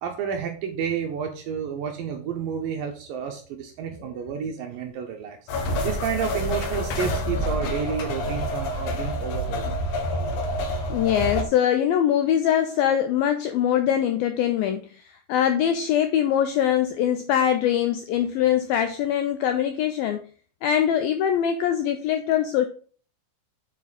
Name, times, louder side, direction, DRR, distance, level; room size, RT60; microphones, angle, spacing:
voice 1, 0.0-5.4 5.8-9.8, right 7 dB, 75° right, 4 dB, 2.1 m, -30 dB
sound 1, 5.5-11.4, left 1 dB, 65° left, 2.1 m, -27 dB
voice 2, 10.9-15.0 15.3-20.2 20.6-22.7, left 10 dB, 85° left, 8 dB, 2.1 m, -22 dB
7.6 x 7.0 x 4.0 m, 0.41 s
omnidirectional pair, 5.0 m